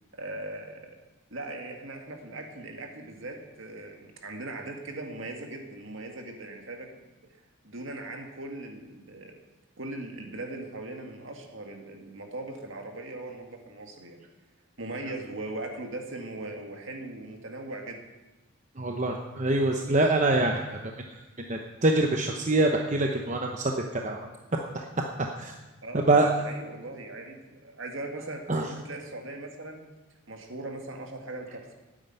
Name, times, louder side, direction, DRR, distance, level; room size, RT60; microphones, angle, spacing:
voice 1, 0.1-0.9 1.3-6.9 7.6-9.3 9.8-14.2 14.8-18.0 25.8-29.8 30.3-31.7, right 2 dB, 60° right, 3 dB, 2.0 m, -39 dB
voice 2, 18.8-20.9 21.5-24.2 24.7-24.8 25.4-25.5 26.1-26.3 28.5-28.7, right 2 dB, 35° right, 2 dB, 0.8 m, -25 dB
9.9 x 8.9 x 9.1 m, 1.1 s
head